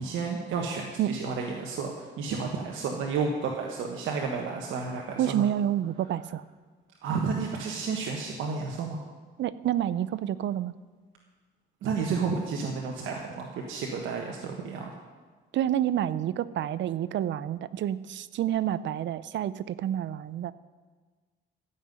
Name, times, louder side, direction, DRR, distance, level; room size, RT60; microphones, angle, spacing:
voice 1, 0.0-5.4 7.0-9.0 11.8-14.9, right 5 dB, 85° right, 0 dB, 1.4 m, -31 dB
voice 2, 5.2-6.4 9.4-10.7 15.5-20.5, right 11 dB, 70° right, 17 dB, 0.6 m, -28 dB
14.5 x 5.7 x 9.4 m, 1.4 s
cardioid pair, 90°, 20 cm